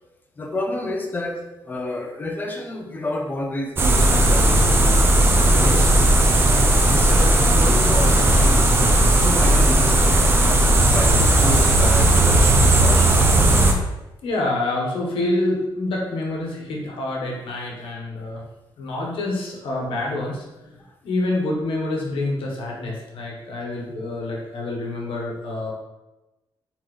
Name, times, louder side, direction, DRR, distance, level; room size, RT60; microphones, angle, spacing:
voice 1, 0.4-1.4 1.6-5.0 5.3-6.0 6.9-8.8 9.2-10.2 10.9-13.2, left 2 dB, 20° left, 2 dB, 0.6 m, -29 dB
sound 1, 3.8-13.7, right 1 dB, 25° right, 0.5 m, -16 dB
voice 2, 6.3-6.9 14.2-18.4 18.8-25.7, left 2 dB, 80° left, -1 dB, 1.1 m, -27 dB
4.3 x 3.8 x 3.1 m, 1.0 s
wide cardioid pair, 160°, 9 cm